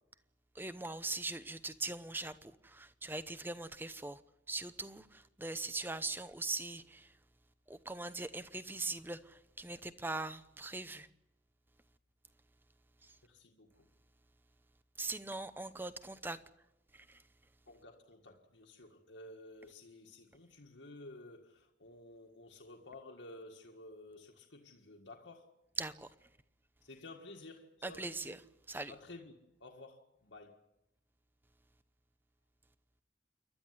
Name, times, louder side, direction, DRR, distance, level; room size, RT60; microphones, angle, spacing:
voice 1, 0.5-4.2 4.5-7.2 7.7-11.1 13.0-13.2 15.0-16.4 16.9-17.2 25.8-26.3 27.8-28.4 28.7-28.9, right 2 dB, 10° right, 0.8 m, -41 dB
voice 2, 13.2-13.9 17.7-25.6 26.8-28.4 28.9-29.3 29.6-30.6, left 2 dB, 75° left, 1.8 m, -53 dB
28.5 x 12.0 x 9.7 m
head